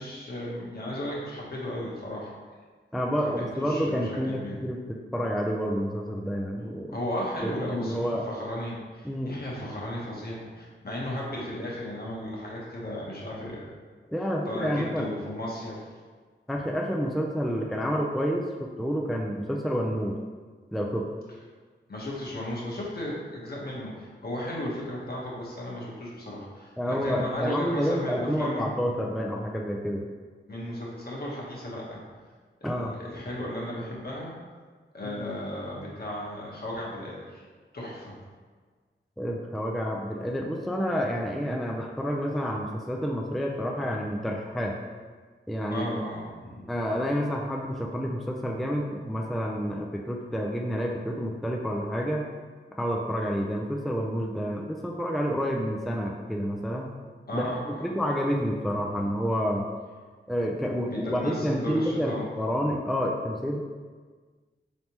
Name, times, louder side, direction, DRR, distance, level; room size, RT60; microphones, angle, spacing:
voice 1, 0.0-2.3 3.2-4.6 6.9-13.7 14.4-15.9 21.9-28.7 30.5-32.0 32.6-34.3 34.9-37.4 37.7-38.2 45.7-46.7 57.3-57.6 58.9-59.1 60.9-62.3, left 1 dB, 50° left, -5 dB, 1.2 m, -35 dB
voice 2, 2.9-4.8 5.1-6.9 7.4-8.3 9.0-9.3 14.1-15.1 16.5-20.2 20.7-21.1 26.8-30.0 32.6-32.9 35.2-35.3 39.2-44.8 45.5-46.0 46.7-52.3 52.8-56.9 57.3-57.5 57.8-59.7 60.3-63.6, equal, ahead, 0 dB, 0.3 m, -29 dB
4.2 x 3.2 x 2.9 m, 1.5 s
cardioid pair, 55°, 20 cm